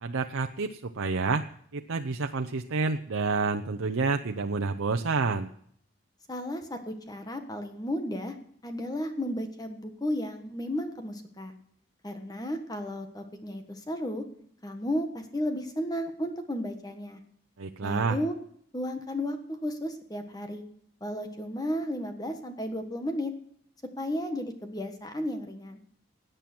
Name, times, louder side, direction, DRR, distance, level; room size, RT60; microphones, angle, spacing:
voice 1, 0.0-1.4 1.7-5.5 17.6-18.2, right 4 dB, 90° right, 6 dB, 0.7 m, -29 dB
voice 2, 6.3-8.3 8.6-11.5 12.0-14.2 14.6-17.2 17.8-18.3 18.7-20.6 21.0-23.3 24.0-25.8, equal, 20° left, 6 dB, 1.4 m, -33 dB
17.5 x 9.1 x 6.1 m, 0.66 s
head